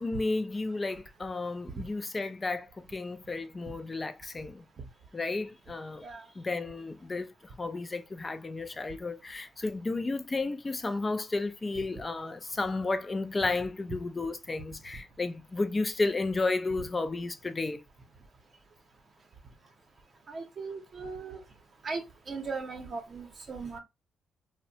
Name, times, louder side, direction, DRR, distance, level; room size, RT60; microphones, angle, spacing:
voice 1, 0.0-4.6 5.1-6.0 6.4-17.8, left 3 dB, 25° left, 0.4 m, -32 dB
voice 2, 20.3-21.4 21.8-23.8, right 4 dB, 40° right, 0.7 m, -38 dB
2.7 x 2.1 x 2.6 m
cardioid pair, 90°, 0 cm